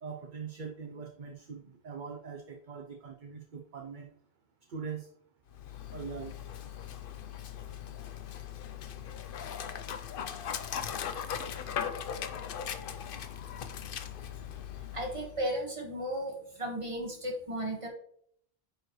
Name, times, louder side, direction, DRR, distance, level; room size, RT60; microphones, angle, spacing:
voice 1, 0.0-4.1 4.7-5.1 5.9-6.5, right 5 dB, 50° right, 2 dB, 0.8 m, -42 dB
Dog, 5.5-15.4, left 8 dB, 60° left, 0.8 m, -39 dB
voice 2, 14.9-17.9, right 1 dB, 30° right, 0 dB, 1.6 m, -35 dB
9.4 x 4.5 x 3.1 m, 0.65 s
omnidirectional pair, 1.1 m